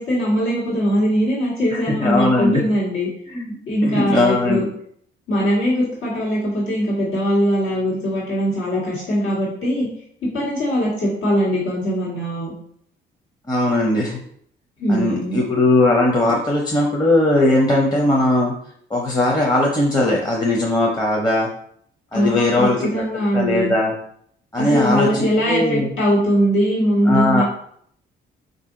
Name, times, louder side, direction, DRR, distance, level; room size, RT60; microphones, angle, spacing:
voice 1, 0.0-3.1 3.7-4.7 5.3-9.9 10.2-12.5 14.8-15.4 22.1-23.7 24.6-27.4, equal, 85° left, -7 dB, 1.7 m, -21 dB
voice 2, 1.7-2.6 3.3-4.6 13.5-14.2 14.9-18.5 18.9-21.5 22.1-22.9 23.3-23.9 24.5-25.9 27.1-27.4, left 2 dB, 20° left, -2 dB, 0.7 m, -19 dB
4.3 x 2.7 x 3.7 m, 0.66 s
cardioid pair, 90°, 20 cm